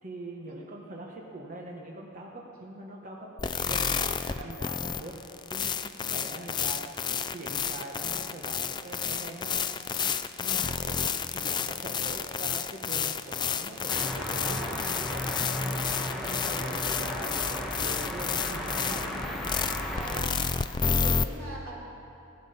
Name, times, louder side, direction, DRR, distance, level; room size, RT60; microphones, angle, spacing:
voice 1, 0.0-5.2 5.5-9.8 10.4-15.8 16.2-19.1, right 1 dB, 40° right, -1 dB, 1.2 m, -42 dB
sound 1, 3.4-21.2, left 6 dB, 20° left, 0.3 m, -31 dB
sound 2, 13.9-20.2, left 1 dB, ahead, 1.5 m, -34 dB
voice 2, 19.9-20.4 20.8-21.8, right 1 dB, 90° right, -4 dB, 3.2 m, -41 dB
16.5 x 12.5 x 5.7 m, 2.9 s
head